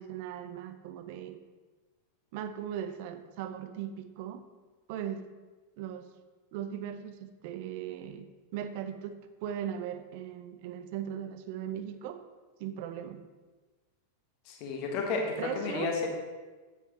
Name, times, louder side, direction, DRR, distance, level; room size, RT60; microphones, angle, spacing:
voice 1, 0.0-1.4 2.3-4.5 4.9-5.3 5.8-6.1 6.5-12.2 12.6-13.2 15.4-15.9, right 9 dB, 50° right, 10 dB, 0.5 m, -38 dB
voice 2, 14.5-16.1, left 4 dB, 40° left, 1 dB, 1.4 m, -32 dB
8.1 x 7.9 x 3.1 m, 1.3 s
figure-of-eight pair, 90°, 0 cm